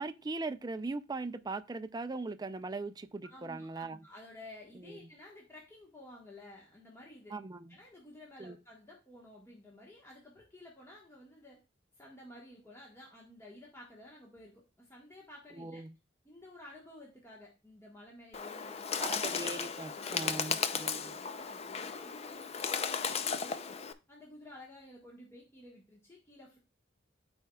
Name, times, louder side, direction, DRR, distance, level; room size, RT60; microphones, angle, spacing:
voice 1, 0.0-4.0 4.7-5.1 7.3-7.8 8.4-8.6 15.5-15.9 19.0-21.1, right 3 dB, 20° right, 0.4 m, -40 dB
voice 2, 3.3-7.3 7.7-11.6 12.0-15.8 16.2-19.2 19.9-23.7 24.1-26.6, left 1 dB, 15° left, 1.3 m, -53 dB
Bird, 18.3-23.9, left 6 dB, 35° left, 0.5 m, -35 dB
12.5 x 4.4 x 2.3 m
head